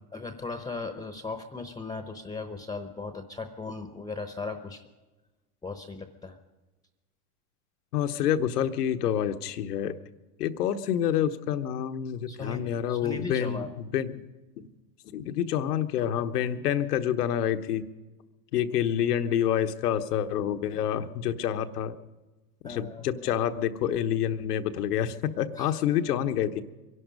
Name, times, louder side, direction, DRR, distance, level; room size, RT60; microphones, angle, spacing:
voice 1, 0.1-4.9 5.6-6.4 12.3-13.7 22.6-23.3 25.6-25.8, left 3 dB, 10° left, 8 dB, 0.8 m, -37 dB
voice 2, 7.9-10.0 10.4-14.2 14.6-14.7 15.1-17.9 18.5-22.0 22.6-26.6, left 10 dB, 85° left, 9 dB, 1.2 m, -28 dB
24.0 x 11.5 x 5.2 m, 1.1 s
supercardioid pair, 125°, 46 cm